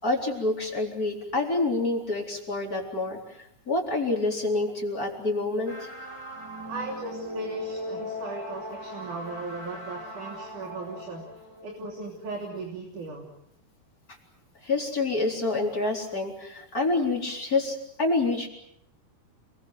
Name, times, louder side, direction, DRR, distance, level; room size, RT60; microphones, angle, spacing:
voice 1, 0.0-3.2 3.7-5.9 14.6-18.5, left 2 dB, 20° left, 0 dB, 4.2 m, -27 dB
sound 1, 5.7-12.5, left 1 dB, 5° right, 3.5 m, -39 dB
voice 2, 6.7-11.2 11.6-13.2, right 3 dB, 50° right, 1 dB, 4.5 m, -37 dB
29.0 x 22.0 x 7.9 m, 0.76 s
omnidirectional pair, 4.7 m